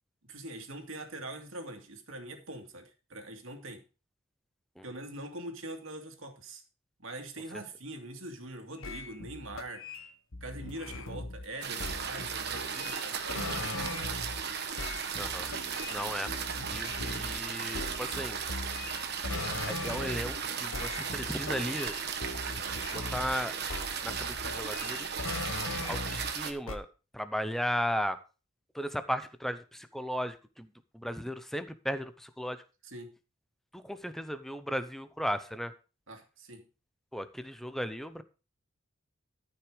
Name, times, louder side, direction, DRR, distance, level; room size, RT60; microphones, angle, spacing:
voice 1, 0.3-3.8 4.8-6.6 7.0-9.8 10.4-14.1 32.8-33.1 36.1-36.6, right 1 dB, 70° right, 4 dB, 2.4 m, -43 dB
sound 1, 8.8-14.4 14.8-20.5 20.7-23.4 23.7-26.4 26.7-26.8, left 2 dB, 75° left, 1.4 m, -40 dB
sound 2, 11.6-26.5, right 6 dB, 50° right, 1.4 m, -36 dB
voice 2, 15.2-15.5 15.9-16.3 16.7-18.4 19.7-22.0 22.9-23.5 24.0-25.2 25.8-26.9 27.1-28.2 28.7-30.7 30.9-32.6 33.7-35.7 37.1-38.2, equal, ahead, 11 dB, 0.8 m, -35 dB
13.5 x 6.0 x 4.9 m, 0.33 s
head